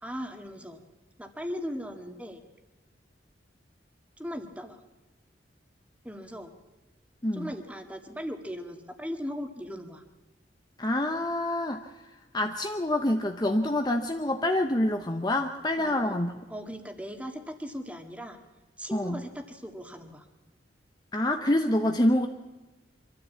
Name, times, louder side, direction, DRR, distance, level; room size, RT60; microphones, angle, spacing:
voice 1, 0.0-0.8 1.2-2.4 4.2-4.8 6.0-6.5 7.3-10.0 15.8-16.2 16.5-18.4 18.8-20.3, equal, 5° right, 5 dB, 1.9 m, -38 dB
voice 2, 10.8-12.0 12.3-16.3 18.9-19.2 21.1-22.3, left 1 dB, 20° left, 5 dB, 0.8 m, -26 dB
25.0 x 13.5 x 8.5 m, 1.2 s
head